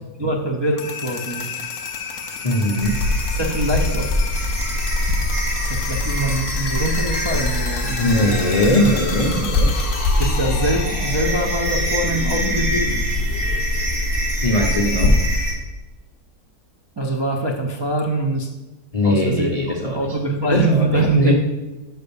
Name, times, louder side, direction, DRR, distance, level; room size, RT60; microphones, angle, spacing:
voice 1, 0.2-1.7 3.3-4.2 5.6-8.5 10.2-13.1 17.0-18.5 19.0-19.5 19.8-21.3, right 2 dB, 35° right, -2 dB, 0.4 m, -23 dB
sound 1, 0.6-14.5, left 5 dB, 55° left, 1.1 m, -31 dB
voice 2, 2.4-3.0 4.4-4.5 8.0-9.7 14.4-15.2 18.9-20.0 20.5-21.3, left 1 dB, 40° left, 0 dB, 0.5 m, -20 dB
sound 2, 2.8-15.5, left 1 dB, 55° right, 2.5 m, -22 dB
6.1 x 5.4 x 6.9 m, 1.1 s
omnidirectional pair, 1.7 m